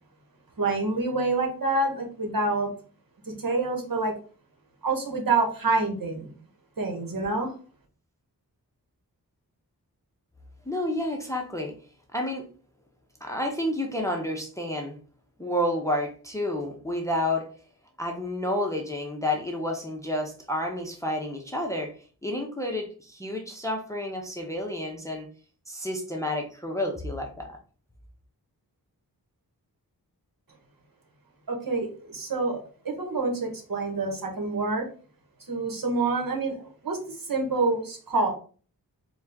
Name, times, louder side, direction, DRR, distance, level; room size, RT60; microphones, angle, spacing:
voice 1, 0.6-2.7 3.3-4.2 4.8-6.3 6.8-7.5 31.5-34.9 35.5-38.3, right 3 dB, 65° right, 2 dB, 1.2 m, -27 dB
voice 2, 10.7-11.8 12.1-12.5 13.2-15.0 15.4-17.5 18.0-21.9 22.2-25.3 25.7-27.6, left 1 dB, 10° left, 2 dB, 0.8 m, -30 dB
4.3 x 2.3 x 3.5 m, 0.40 s
wide cardioid pair, 60°, 38 cm